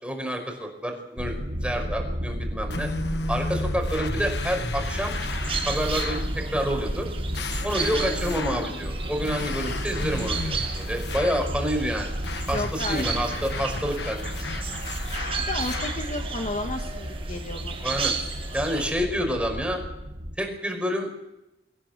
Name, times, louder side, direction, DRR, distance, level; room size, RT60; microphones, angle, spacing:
voice 1, 0.0-2.9 3.3-5.2 5.6-7.1 7.6-12.2 12.5-14.3 17.8-18.1 18.5-19.8 20.4-21.1, equal, 5° right, 3 dB, 5.3 m, -28 dB
sound 1, 1.2-20.4, equal, 55° right, 2.1 m, -32 dB
sound 2, 2.7-6.3 7.3-8.7 9.2-11.5 12.2-16.1, left 3 dB, 70° left, 1.3 m, -35 dB
sound 3, 4.8-18.9, right 6 dB, 35° right, 6.6 m, -35 dB
voice 2, 7.9-8.9 12.5-13.3 15.5-18.0, left 2 dB, 45° left, 4 dB, 1.6 m, -33 dB
24.0 x 16.5 x 8.2 m, 0.92 s
head